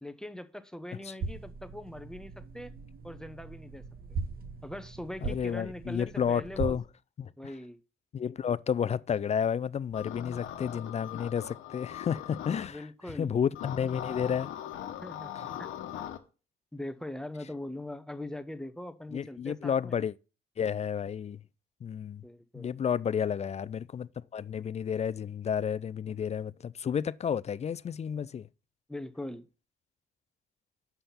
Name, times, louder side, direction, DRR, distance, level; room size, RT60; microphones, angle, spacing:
voice 1, 0.0-2.7 3.0-3.8 4.6-6.8 7.4-7.8 12.7-13.4 15.0-15.3 15.6-15.7 16.0-16.1 16.7-20.0 22.2-22.8 28.9-29.5, left 1 dB, 5° left, 0.8 m, -41 dB
sound 1, 1.2-6.8, right 4 dB, 50° right, 1.1 m, -39 dB
voice 2, 5.2-6.8 7.2-7.3 8.1-12.8 13.2-14.5 19.1-20.1 20.6-21.4 21.8-22.2 22.5-28.5, left 7 dB, 35° left, 0.4 m, -31 dB
sound 2, 9.9-12.7 13.5-16.2, left 10 dB, 80° left, 1.0 m, -40 dB
7.0 x 5.6 x 5.7 m
cardioid pair, 90°, 20 cm